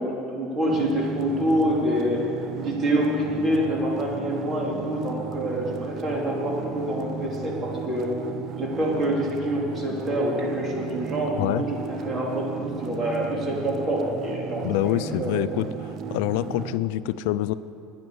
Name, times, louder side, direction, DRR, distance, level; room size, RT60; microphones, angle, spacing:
voice 1, 0.0-8.1 8.6-15.4, equal, 30° right, -2 dB, 3.1 m, -26 dB
sound 1, 0.7-16.8, right 7 dB, 50° right, 0.6 m, -35 dB
voice 2, 14.6-15.7 16.1-17.5, left 14 dB, 75° left, 15 dB, 0.3 m, -25 dB
9.7 x 9.4 x 7.9 m, 2.6 s
supercardioid pair, 110°, 0 cm